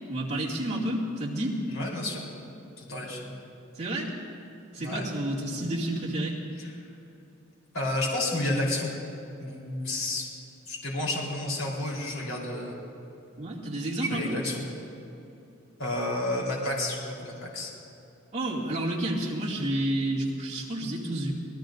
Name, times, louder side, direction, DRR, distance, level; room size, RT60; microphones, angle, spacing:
voice 1, 0.1-1.6 3.8-4.1 4.7-6.4 13.4-14.3 18.3-21.3, right 1 dB, 35° right, -4 dB, 2.3 m, -30 dB
voice 2, 1.7-2.2 2.8-3.3 4.8-5.0 6.6-6.7 7.7-8.9 9.4-10.3 10.7-12.8 14.1-14.6 15.8-17.7, left 1 dB, 80° left, -3 dB, 3.8 m, -31 dB
26.5 x 19.5 x 2.6 m, 2.9 s
head